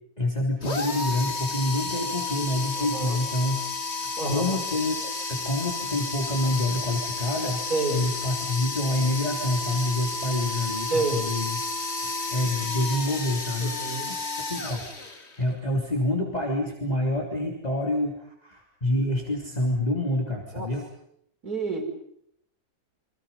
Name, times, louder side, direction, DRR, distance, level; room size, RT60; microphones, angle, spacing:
voice 1, 0.2-7.6 7.9-11.6 12.3-14.2 14.5-20.9, left 1 dB, 25° left, 0 dB, 3.5 m, -27 dB
sound 1, 0.6-15.5, left 3 dB, 45° left, 2.6 m, -32 dB
voice 2, 2.8-3.2 4.2-4.6 7.7-8.0 10.9-11.2 13.6-14.1 20.5-20.7 21.4-21.8, right 3 dB, 90° right, 1 dB, 5.9 m, -29 dB
29.0 x 25.5 x 5.6 m, 0.72 s
omnidirectional pair, 1.6 m